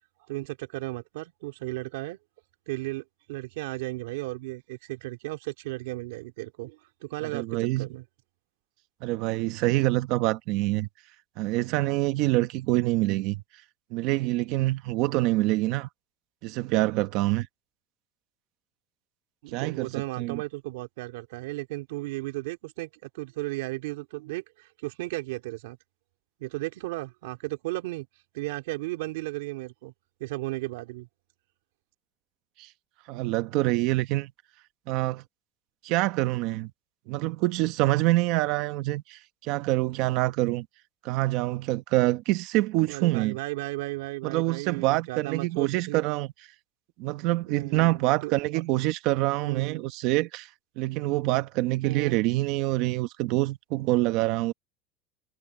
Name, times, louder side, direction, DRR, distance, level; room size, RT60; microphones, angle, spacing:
voice 1, 0.3-2.2 2.7-8.0 19.4-25.8 26.4-28.1 28.3-29.9 30.2-31.1 42.9-46.0 47.4-48.6 49.4-49.8 51.8-52.2, right 20 dB, 85° right, 3.3 m, -35 dB
voice 2, 7.2-7.9 9.0-10.9 11.4-13.4 13.9-15.9 16.4-17.5 19.5-20.4 32.6-32.7 33.1-34.3 34.9-35.2 35.8-36.7 37.1-40.7 41.0-43.4 44.2-46.3 47.0-50.5 50.8-54.5, right 18 dB, 50° right, 1.1 m, -26 dB
cardioid pair, 175°, 0 cm